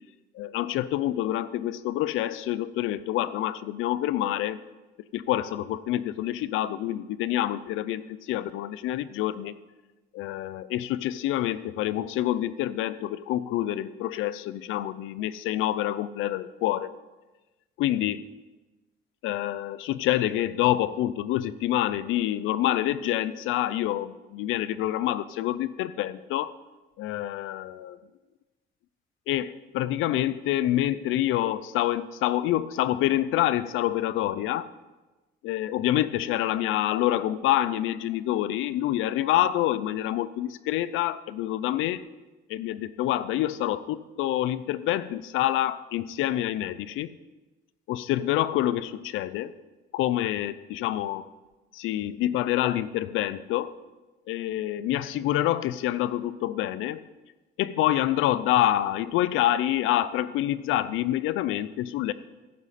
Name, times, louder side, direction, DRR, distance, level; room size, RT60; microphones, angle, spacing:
voice 1, 0.3-4.6 5.1-9.5 10.1-16.9 17.8-18.3 19.2-26.5 27.0-28.0 29.3-34.7 35.4-42.0 42.5-47.1 47.9-49.5 49.9-51.3 51.7-53.7 54.3-57.0 57.6-62.1, left 13 dB, 90° left, 16 dB, 0.6 m, -27 dB
16.5 x 9.5 x 4.2 m, 1.1 s
cardioid pair, 105°, 20 cm